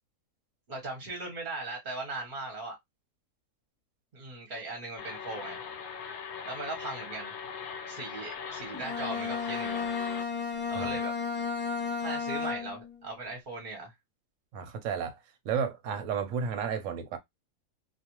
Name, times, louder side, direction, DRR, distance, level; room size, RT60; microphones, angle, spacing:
voice 1, 0.7-2.8 4.1-5.6 6.5-7.3 7.9-9.9 10.7-11.1 12.0-13.9, right 2 dB, 40° right, 0.9 m, -38 dB
sound 1, 5.0-10.2, left 6 dB, 75° left, 1.1 m, -40 dB
Bowed string instrument, 8.7-13.0, left 5 dB, 15° left, 0.4 m, -33 dB
voice 2, 14.5-15.2 15.4-17.2, right 7 dB, 65° right, 1.0 m, -32 dB
2.4 x 2.4 x 2.8 m
omnidirectional pair, 1.6 m